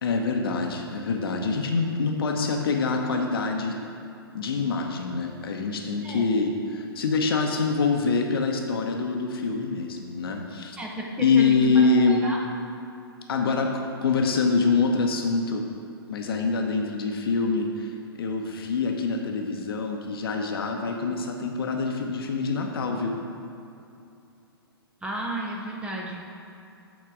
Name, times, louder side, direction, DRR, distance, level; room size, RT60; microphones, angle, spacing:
voice 1, 0.0-3.8 4.3-10.8 11.2-12.2 13.3-15.7 16.1-23.2, left 4 dB, 65° left, 3 dB, 0.9 m, -25 dB
voice 2, 10.8-12.4 25.0-26.3, right 1 dB, 10° right, -1 dB, 0.8 m, -33 dB
8.2 x 4.1 x 4.9 m, 2.7 s
hypercardioid pair, 120°, 13 cm